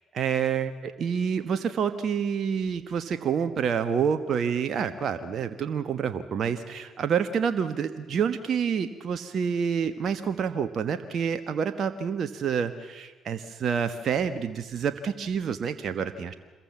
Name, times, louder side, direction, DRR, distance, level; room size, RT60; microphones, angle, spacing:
voice 1, 0.1-16.3, right 7 dB, 55° right, 9 dB, 1.3 m, -28 dB
27.5 x 22.0 x 7.2 m, 1.4 s
hypercardioid pair, 50°, 0 cm